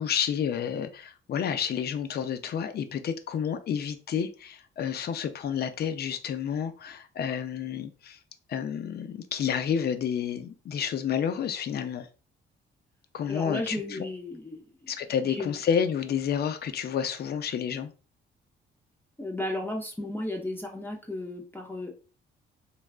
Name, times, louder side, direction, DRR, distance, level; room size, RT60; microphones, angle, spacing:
voice 1, 0.0-8.2 8.5-12.1 13.1-14.1 14.9-17.9, left 8 dB, 55° left, 0.5 m, -30 dB
voice 2, 13.3-14.9 15.2-15.6 19.2-21.9, left 1 dB, 10° left, 0.6 m, -34 dB
3.3 x 2.2 x 2.4 m
cardioid pair, 90°, 20 cm